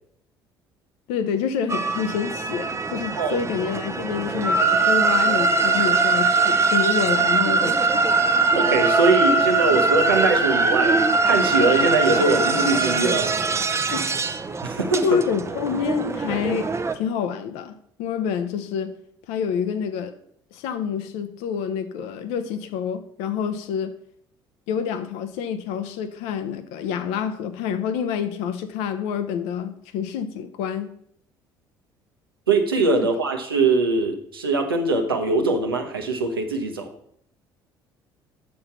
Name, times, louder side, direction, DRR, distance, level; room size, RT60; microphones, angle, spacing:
voice 1, 1.1-8.1 13.9-14.1 15.0-18.9 19.3-20.1 20.5-23.9 24.7-31.0, left 7 dB, 65° left, 0.7 m, -27 dB
sound 1, 1.7-16.9, right 3 dB, 25° right, 0.7 m, -22 dB
voice 2, 8.5-13.3 14.6-15.2 32.5-36.9, right 3 dB, 90° right, 0.9 m, -22 dB
6.8 x 5.3 x 5.8 m
figure-of-eight pair, 55°, 12 cm